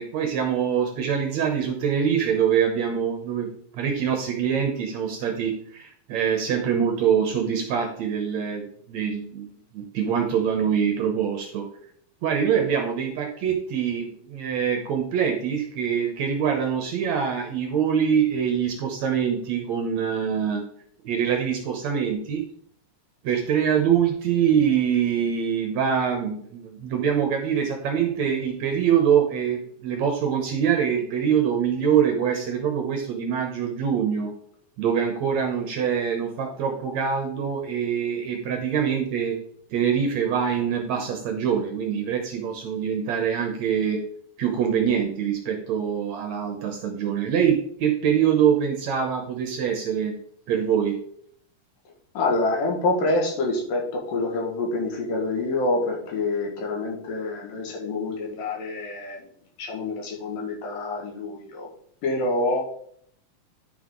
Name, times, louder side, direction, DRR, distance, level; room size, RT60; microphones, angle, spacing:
voice 1, 0.0-11.7 12.2-20.6 21.0-22.4 23.2-34.3 34.8-39.4 39.7-44.0 44.4-50.2 50.5-51.0, right 8 dB, 70° right, 3 dB, 1.8 m, -24 dB
voice 2, 52.1-59.3 59.6-61.7 62.0-62.6, left 2 dB, 75° left, 0 dB, 3.3 m, -26 dB
10.5 x 5.6 x 3.7 m, 0.65 s
omnidirectional pair, 4.0 m